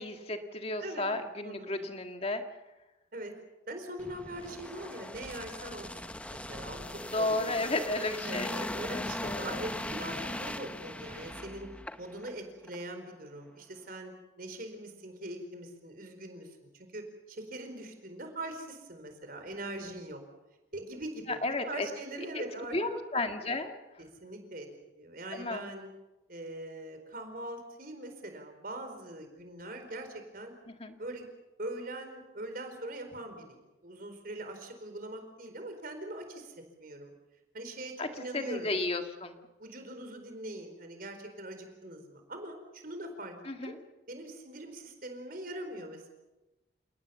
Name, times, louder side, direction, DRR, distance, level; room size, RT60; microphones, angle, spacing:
voice 1, 0.0-2.4 7.1-9.6 21.4-21.9 22.3-22.4 22.7-23.7 25.3-25.7 30.7-31.0 38.0-39.4 43.5-43.8, left 2 dB, 30° left, 5 dB, 1.9 m, -33 dB
voice 2, 1.4-1.9 3.1-3.3 3.7-6.9 7.2-7.7 8.2-11.7 12.0-14.1 14.4-20.2 20.7-22.8 24.0-24.7 25.0-25.9 26.3-30.5 31.0-31.3 31.6-37.1 37.5-38.8 39.6-43.3 43.6-43.7 44.1-46.1, right 1 dB, 50° right, 6 dB, 4.5 m, -42 dB
sound 1, 4.0-12.3 12.7-12.8, left 1 dB, 5° left, 0.8 m, -39 dB
29.0 x 18.0 x 7.2 m, 1.1 s
head